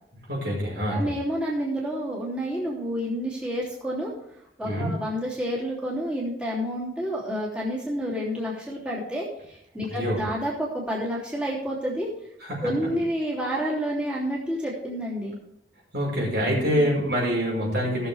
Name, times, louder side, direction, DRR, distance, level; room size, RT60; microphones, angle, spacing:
voice 1, 0.3-1.1 4.6-4.9 9.9-10.2 12.4-12.7 15.9-18.1, equal, 70° right, -3 dB, 5.4 m, -25 dB
voice 2, 0.9-4.1 4.6-12.1 12.6-15.4 16.6-16.8, equal, 5° right, -7 dB, 3.1 m, -29 dB
18.0 x 6.9 x 3.5 m, 0.78 s
head